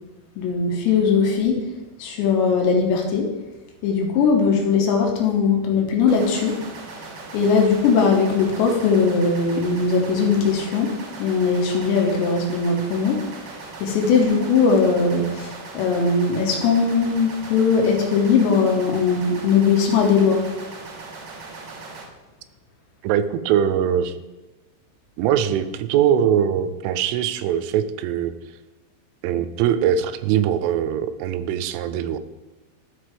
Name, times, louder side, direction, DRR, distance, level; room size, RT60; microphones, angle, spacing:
voice 1, 0.4-1.6 2.0-3.3 3.8-6.6 7.3-10.9 11.2-13.2 13.8-20.4, left 5 dB, 75° left, 1 dB, 3.0 m, -19 dB
sound 1, 6.1-22.0, right 3 dB, 70° right, 2.5 m, -39 dB
voice 2, 23.0-24.1 25.2-28.3 29.2-32.2, right 9 dB, 90° right, 12 dB, 3.1 m, -22 dB
13.5 x 5.3 x 3.4 m, 1.1 s
omnidirectional pair, 5.5 m